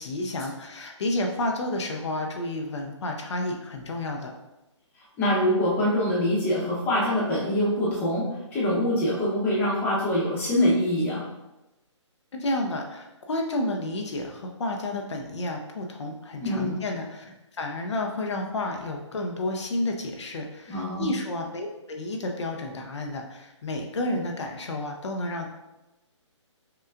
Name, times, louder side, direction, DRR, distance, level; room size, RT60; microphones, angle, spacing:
voice 1, 0.0-4.3 12.3-25.5, left 1 dB, 65° left, 2 dB, 0.6 m, -31 dB
voice 2, 5.2-11.2 16.4-16.8 20.7-21.1, left 1 dB, 10° left, -7 dB, 0.9 m, -24 dB
5.6 x 2.3 x 2.4 m, 0.97 s
hypercardioid pair, 155°, 16 cm